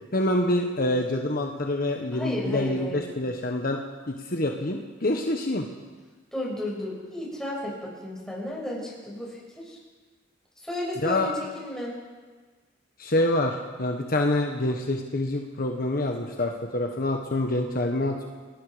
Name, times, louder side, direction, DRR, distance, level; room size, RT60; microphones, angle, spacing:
voice 1, 0.1-5.7 11.0-11.3 13.0-18.3, left 1 dB, 50° left, 3 dB, 1.4 m, -26 dB
voice 2, 2.1-3.1 6.3-9.8 10.6-11.9, left 1 dB, 5° left, -4 dB, 7.2 m, -33 dB
30.0 x 19.0 x 5.2 m, 1.4 s
head